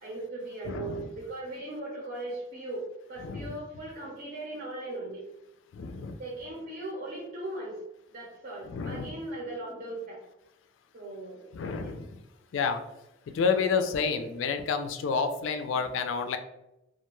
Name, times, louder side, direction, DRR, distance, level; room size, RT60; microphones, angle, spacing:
voice 1, 0.0-5.2 6.2-7.8 8.1-10.2 10.9-11.4 11.7-11.9 13.4-13.8, right 2 dB, 50° right, -5 dB, 0.6 m, -38 dB
voice 2, 0.7-1.1 3.2-3.5 5.7-6.2 8.6-9.2 11.5-12.2 12.5-12.8 13.3-16.4, left 5 dB, 75° left, 8 dB, 0.3 m, -29 dB
2.4 x 2.2 x 2.9 m, 0.90 s
head